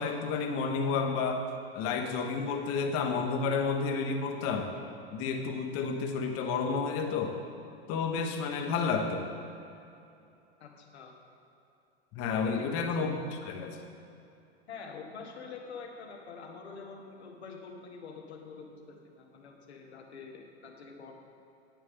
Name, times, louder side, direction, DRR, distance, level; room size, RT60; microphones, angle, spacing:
voice 1, 0.0-1.4 1.7-4.7 5.1-7.4 7.9-9.3 12.1-13.1 13.4-13.8, left 5 dB, 45° left, 4 dB, 1.2 m, -30 dB
voice 2, 10.6-11.1 12.4-13.1 14.7-21.1, left 5 dB, 80° left, 2 dB, 1.4 m, -46 dB
10.5 x 9.4 x 3.7 m, 2.7 s
hypercardioid pair, 95°, 32 cm